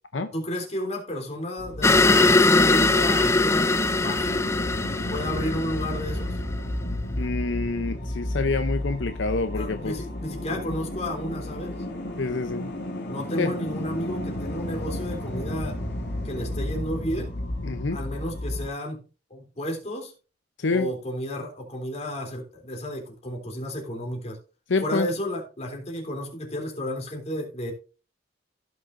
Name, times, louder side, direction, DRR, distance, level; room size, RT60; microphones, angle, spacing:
voice 1, 0.3-3.7 4.0-4.5 5.1-6.4 9.5-11.7 13.1-15.8 16.2-17.3 17.9-19.0 19.3-20.1 20.7-24.4 24.8-27.7, equal, 35° left, 3.4 m, -32 dB
sound 1, 1.6-18.7, left 1 dB, 65° left, 2.2 m, -32 dB
sound 2, 1.8-6.4, left 3 dB, 15° left, 0.4 m, -21 dB
voice 2, 7.2-9.9 12.2-12.7 13.4-13.5 17.6-18.0 20.6-20.9 24.7-25.1, left 3 dB, 80° left, 0.7 m, -27 dB
16.0 x 6.3 x 2.6 m
head